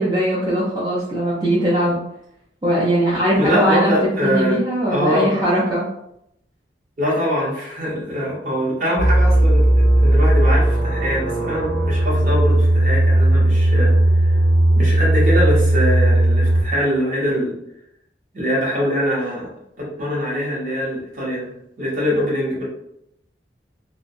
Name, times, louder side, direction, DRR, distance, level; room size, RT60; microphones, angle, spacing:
voice 1, 0.0-2.0 2.6-5.9, equal, 25° right, -8 dB, 0.5 m, -20 dB
voice 2, 3.4-4.6 4.9-5.3 7.0-14.4 14.8-17.5 18.3-19.5 19.8-21.5 21.8-22.6, equal, 45° right, -4 dB, 0.8 m, -23 dB
sound 1, 9.0-16.6, right 1 dB, 75° right, 0.9 m, -16 dB
2.3 x 2.2 x 2.6 m, 0.78 s
head